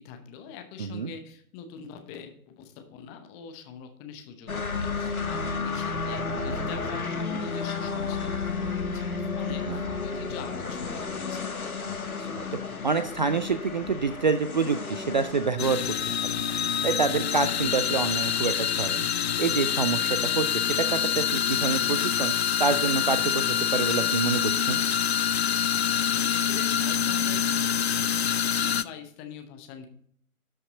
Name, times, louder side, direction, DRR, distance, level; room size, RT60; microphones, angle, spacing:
voice 1, 0.0-11.4 25.7-29.9, left 7 dB, 15° left, 5 dB, 0.8 m, -44 dB
voice 2, 0.8-1.1 9.7-9.8 11.9-12.6 12.8-15.9 16.2-16.5 16.8-19.1 19.4-22.3 22.6-24.8, right 5 dB, 35° right, 11 dB, 0.4 m, -27 dB
sound 1, 4.5-15.5, left 4 dB, 75° left, 1.6 m, -32 dB
sound 2, 15.6-28.8, left 8 dB, 50° left, 0.5 m, -26 dB
12.5 x 5.7 x 4.0 m, 0.62 s
figure-of-eight pair, 125°, 43 cm